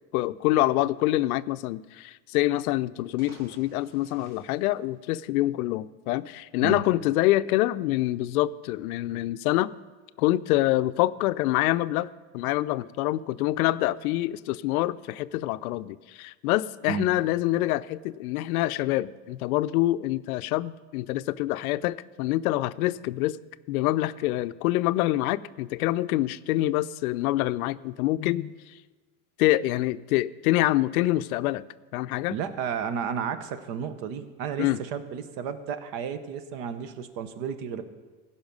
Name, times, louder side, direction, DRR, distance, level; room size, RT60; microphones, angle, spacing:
voice 1, 0.1-9.7 10.2-12.1 12.3-23.4 23.7-28.5 29.4-31.6 31.9-32.4 34.6-34.8, left 16 dB, 80° left, 15 dB, 0.5 m, -26 dB
sound 1, 3.0-5.6, right 3 dB, 70° right, 2.0 m, -54 dB
voice 2, 32.3-37.8, right 7 dB, 50° right, 12 dB, 0.9 m, -32 dB
16.0 x 5.7 x 5.3 m, 1.3 s
supercardioid pair, 150°, 43 cm